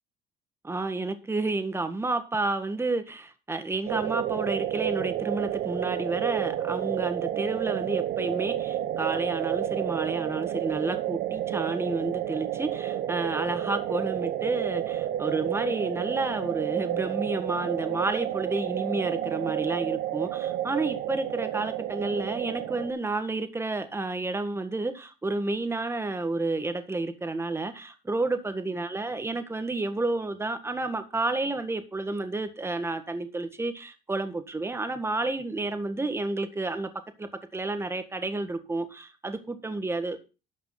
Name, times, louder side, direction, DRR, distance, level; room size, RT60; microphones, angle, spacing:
voice 1, 0.6-36.9 37.2-40.3, right 2 dB, 15° right, 1.6 m, -30 dB
sound 1, 3.9-22.9, right 12 dB, 70° right, 0.9 m, -30 dB
11.5 x 5.9 x 5.8 m
cardioid pair, 110°, 17 cm